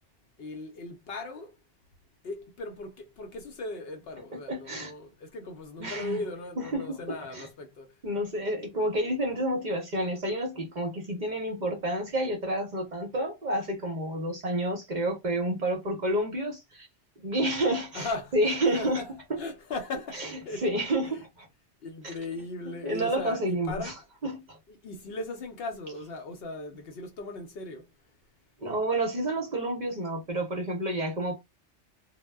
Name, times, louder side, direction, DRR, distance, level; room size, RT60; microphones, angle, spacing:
voice 1, 0.4-1.6 2.2-8.0 17.9-20.7 21.0-21.2 21.8-24.0 24.7-27.9, left 2 dB, 65° left, 0.7 m, -38 dB
voice 2, 4.5-4.9 5.8-6.2 6.6-7.0 7.3-7.5 8.0-16.9 17.2-18.1 18.3-19.0 20.2-20.3 20.6-21.5 22.8-23.9 24.2-24.6 28.6-31.3, right 1 dB, 50° right, 0.6 m, -29 dB
2.1 x 2.0 x 3.2 m
omnidirectional pair, 1.2 m